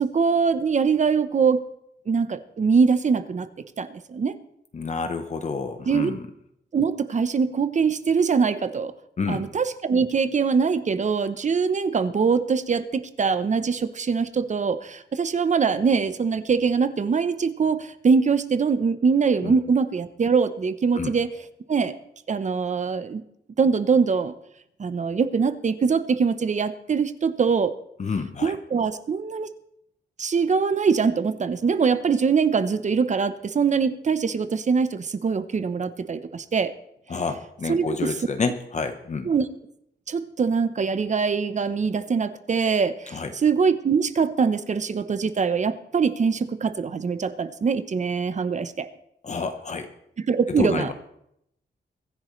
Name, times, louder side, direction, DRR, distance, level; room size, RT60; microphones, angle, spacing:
voice 1, 0.0-1.7 2.1-3.5 3.8-4.3 5.9-6.1 6.7-8.9 9.3-21.4 21.7-22.0 22.3-23.2 23.6-24.3 24.8-27.7 28.4-29.5 30.2-36.7 37.7-38.1 39.2-39.5 40.1-48.9 50.2-50.9, right 5 dB, 40° right, 12 dB, 0.8 m, -23 dB
voice 2, 4.7-6.2 9.2-9.5 19.4-19.6 20.9-21.1 28.0-28.5 37.1-39.3 43.1-43.3 49.2-49.9 50.5-50.9, left 4 dB, 40° left, 7 dB, 1.0 m, -29 dB
23.5 x 10.5 x 3.2 m, 0.77 s
wide cardioid pair, 120°, 18 cm